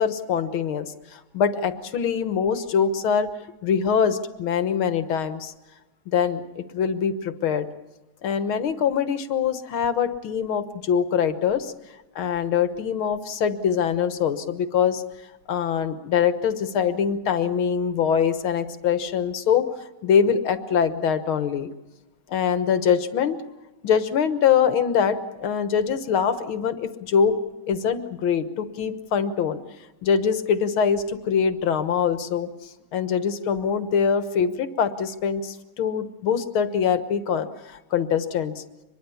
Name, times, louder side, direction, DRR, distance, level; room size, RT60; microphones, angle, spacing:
voice 1, 0.0-3.3 3.6-5.5 6.1-7.7 8.2-11.7 12.2-15.0 15.5-19.7 20.0-21.7 22.3-23.4 23.8-27.4 27.7-29.6 30.0-32.5 32.9-38.6, left 7 dB, 85° left, 10 dB, 2.1 m, -23 dB
25.0 x 21.5 x 7.1 m, 1.0 s
omnidirectional pair, 2.2 m